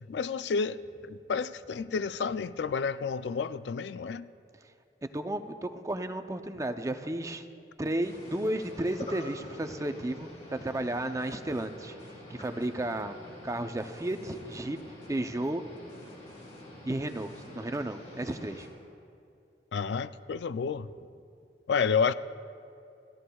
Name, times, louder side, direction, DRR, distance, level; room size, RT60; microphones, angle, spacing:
voice 1, 0.1-4.3 19.7-20.9 21.7-22.1, left 5 dB, 75° left, 14 dB, 0.4 m, -30 dB
voice 2, 5.1-7.5 7.8-13.2 13.4-14.8 15.1-15.6 16.9-18.7, right 1 dB, 20° right, 8 dB, 0.5 m, -33 dB
sound 1, 8.0-18.7, left 1 dB, 40° left, 3.6 m, -47 dB
28.5 x 14.5 x 2.3 m, 2.5 s
head